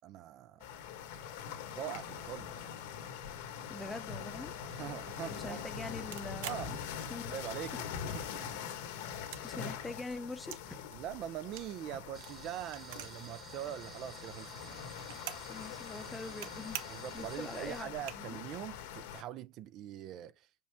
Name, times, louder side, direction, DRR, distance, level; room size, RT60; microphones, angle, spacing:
voice 1, 0.0-0.7 1.7-2.5 4.7-5.6 6.5-6.7 7.3-7.9 8.1-8.5 10.9-14.8 16.9-20.5, right 11 dB, 45° right, 0.4 m, -43 dB
sound 1, 0.6-19.2, left 8 dB, 70° left, 1.4 m, -43 dB
voice 2, 3.7-4.5 5.3-6.8 7.1-7.3 7.7-7.8 9.4-10.9 15.5-16.8 17.1-18.3, left 3 dB, 10° left, 0.7 m, -44 dB
sound 2, 6.1-7.6 7.9-8.7 9.0-10.7 10.9-13.3 13.6-13.7 13.9-15.6 15.9-16.5 16.7-17.1 17.6-17.7 17.9-18.6, right 12 dB, 75° right, 0.8 m, -46 dB
sound 3, 12.1-17.8, right 5 dB, 25° right, 1.1 m, -53 dB
5.4 x 5.2 x 3.5 m
supercardioid pair, 140°, 0 cm